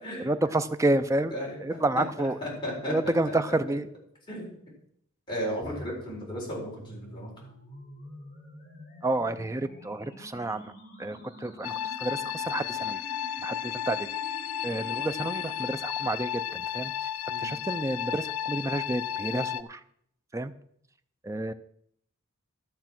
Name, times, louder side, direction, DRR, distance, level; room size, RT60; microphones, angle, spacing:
voice 1, 0.2-1.4 1.6-2.4 2.9-3.9 9.0-10.7 11.0-13.0 13.4-14.1 14.6-17.1 17.4-19.8 20.3-20.5 21.2-21.5, right 2 dB, 15° right, 10 dB, 0.4 m, -29 dB
voice 2, 1.3-1.8 2.2-3.5 4.3-4.6 5.3-7.5 17.3-17.5, equal, 20° left, -4 dB, 4.2 m, -35 dB
sound 1, 5.6-15.6, equal, 40° left, 2.8 m, -48 dB
sound 2, 11.6-19.6, left 10 dB, 80° left, 0.5 m, -33 dB
12.5 x 6.5 x 6.0 m, 0.70 s
head